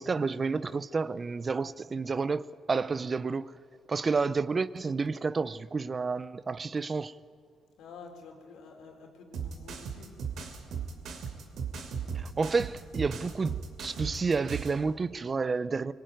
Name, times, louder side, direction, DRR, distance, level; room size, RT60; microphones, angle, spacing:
voice 1, 0.0-3.5 3.9-7.1 12.1-15.9, right 4 dB, 35° right, 0.6 m, -30 dB
voice 2, 7.8-10.1, left 5 dB, 85° left, 4.2 m, -49 dB
sound 1, 9.3-14.8, right 6 dB, 70° right, 2.9 m, -37 dB
21.5 x 20.0 x 9.2 m
cardioid pair, 90°, 0 cm